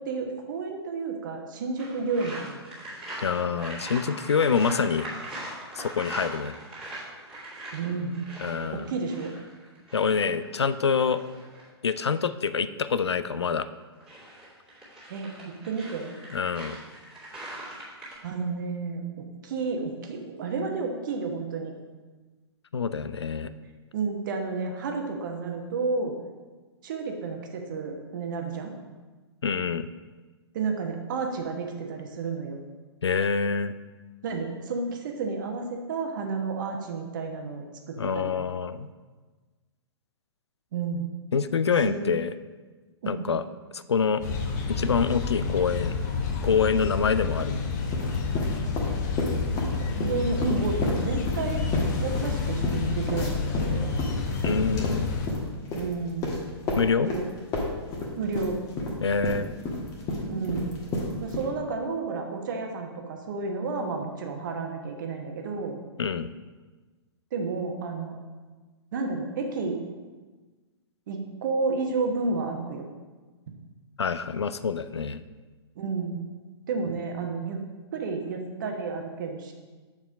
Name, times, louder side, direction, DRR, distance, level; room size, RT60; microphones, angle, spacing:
voice 1, 0.1-2.6 7.7-8.2 8.7-9.3 15.1-16.1 18.2-19.0 19.4-21.7 23.9-26.1 26.8-28.7 30.5-32.6 34.2-38.3 40.7-41.1 41.8-42.1 43.0-43.3 49.8-51.7 52.0-54.1 55.7-56.4 57.1-57.2 58.2-58.6 60.3-60.8 61.2-65.8 67.3-68.2 68.9-69.8 71.1-72.9 75.7-76.2 76.7-77.6 77.9-79.5, right 4 dB, 45° right, 3 dB, 1.1 m, -31 dB
sound 1, 1.8-11.7 13.8-18.2, right 1 dB, 5° right, 2.3 m, -41 dB
voice 2, 3.2-5.1 5.8-6.6 8.4-8.9 9.9-11.2 11.8-13.7 16.3-16.8 22.7-23.5 29.4-29.9 33.0-33.7 37.9-38.9 41.3-42.3 43.1-43.4 43.7-44.2 44.7-46.0 46.4-47.6 54.4-55.1 56.7-57.1 59.0-59.5 66.0-66.3 74.0-75.2, left 6 dB, 75° left, 13 dB, 0.4 m, -26 dB
sound 2, 44.2-55.3, left 4 dB, 40° left, 0.8 m, -29 dB
sound 3, 47.8-49.7 50.0-57.2 57.5-61.4, left 2 dB, 25° left, 1.3 m, -30 dB
6.8 x 4.8 x 5.0 m, 1.3 s
figure-of-eight pair, 115°, 14 cm